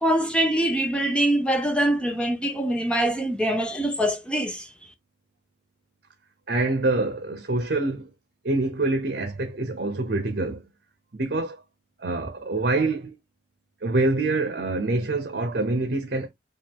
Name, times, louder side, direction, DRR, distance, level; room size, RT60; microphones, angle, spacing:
voice 1, 0.0-4.7, right 1 dB, 5° left, 0.6 m, -24 dB
voice 2, 6.5-8.1 8.4-10.6 11.1-11.6 12.0-13.2 13.8-16.3, right 2 dB, 60° right, 0.7 m, -25 dB
5.3 x 2.5 x 3.6 m
head